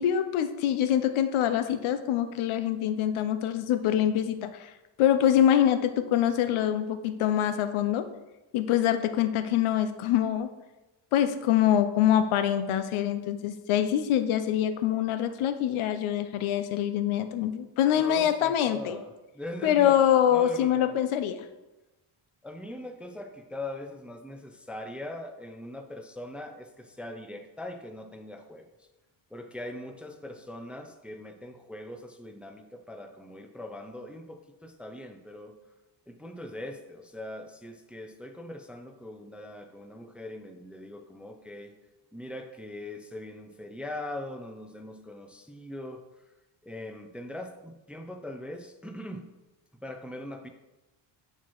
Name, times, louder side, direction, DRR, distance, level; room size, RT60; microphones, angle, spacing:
voice 1, 0.0-4.7 5.0-8.0 8.5-10.5 11.1-19.0 19.6-21.5, left 10 dB, 85° left, 10 dB, 0.6 m, -25 dB
voice 2, 18.0-20.0 20.3-21.0 22.4-28.9 29.3-35.6 36.1-41.7 42.1-46.1 46.6-49.3 49.8-50.5, left 1 dB, 5° right, 5 dB, 0.4 m, -41 dB
8.3 x 4.3 x 3.0 m, 1.0 s
cardioid pair, 110°, 47 cm